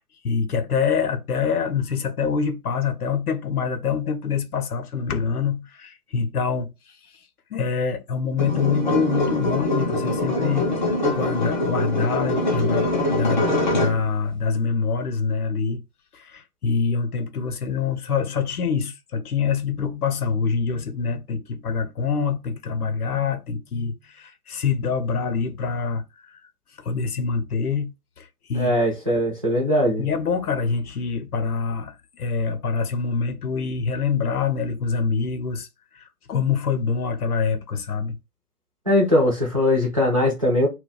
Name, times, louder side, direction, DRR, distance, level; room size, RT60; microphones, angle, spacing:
voice 1, 0.2-6.7 7.5-10.7 11.1-15.8 16.1-26.0 26.3-26.4 26.8-27.9 28.2-28.7 30.0-35.7 35.9-38.1, left 5 dB, 70° left, 0.7 m, -25 dB
sound 1, 8.4-14.1, left 1 dB, 35° left, 0.4 m, -23 dB
voice 2, 28.5-30.1 38.9-40.7, left 1 dB, 25° right, 0.4 m, -20 dB
2.2 x 2.2 x 3.8 m
figure-of-eight pair, 130°, 46 cm